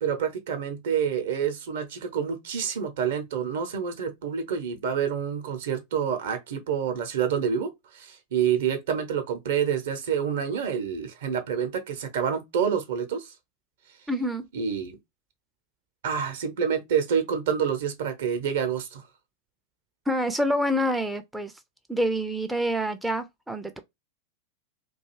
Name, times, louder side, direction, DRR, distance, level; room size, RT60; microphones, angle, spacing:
voice 1, 0.0-13.3 14.5-15.0 16.0-19.0, right 7 dB, 55° right, 0.6 m, -28 dB
voice 2, 14.1-14.4 20.1-21.5 21.9-23.8, equal, 5° right, 0.3 m, -27 dB
2.5 x 2.2 x 3.0 m
figure-of-eight pair, 90°, 0 cm